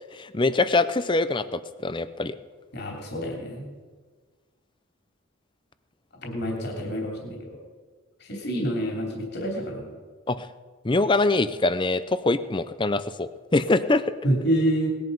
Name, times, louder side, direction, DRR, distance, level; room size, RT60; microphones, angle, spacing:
voice 1, 0.1-2.3 10.3-10.5 10.8-14.0, left 2 dB, 20° left, 13 dB, 0.5 m, -24 dB
voice 2, 2.7-3.7 6.2-7.6 8.2-9.9 14.2-14.9, right 1 dB, 50° left, 0 dB, 3.0 m, -27 dB
19.0 x 11.0 x 5.3 m, 1.5 s
head